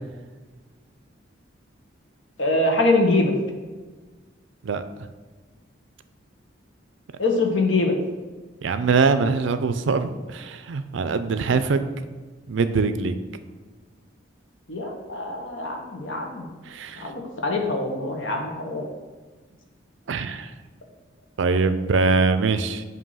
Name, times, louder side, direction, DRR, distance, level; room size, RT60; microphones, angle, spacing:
voice 1, 2.4-3.3 7.2-7.9 14.7-16.5 17.0-18.9, left 2 dB, 80° left, 2 dB, 1.1 m, -23 dB
voice 2, 8.6-11.8 12.5-13.1 16.7-17.1 20.1-20.5 21.4-22.8, right 4 dB, 75° right, 11 dB, 0.4 m, -23 dB
7.6 x 2.8 x 5.5 m, 1.3 s
head